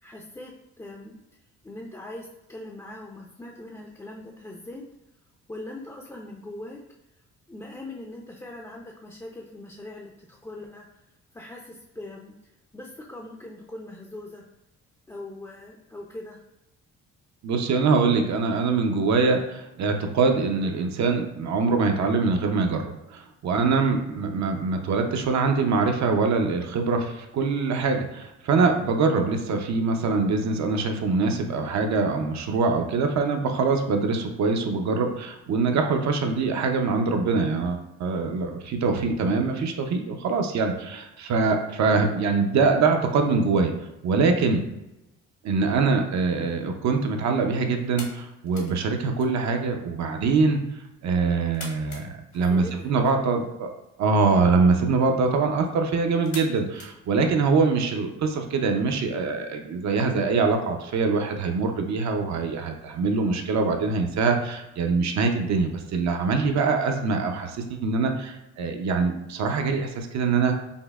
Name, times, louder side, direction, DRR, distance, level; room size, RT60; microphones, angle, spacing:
voice 1, 0.0-1.2 1.6-4.9 5.5-6.8 7.5-11.0 11.3-12.3 12.7-14.4 15.1-16.4 52.4-52.9, left 1 dB, 10° left, -1 dB, 0.4 m, -41 dB
voice 2, 17.4-22.8 23.1-43.7 44.0-44.6 45.4-50.6 51.0-53.7 54.0-70.6, right 4 dB, 65° right, 4 dB, 0.6 m, -24 dB
sound 1, 47.7-57.8, left 3 dB, 70° left, 1.1 m, -48 dB
5.2 x 2.0 x 2.3 m, 0.92 s
cardioid pair, 90°, 30 cm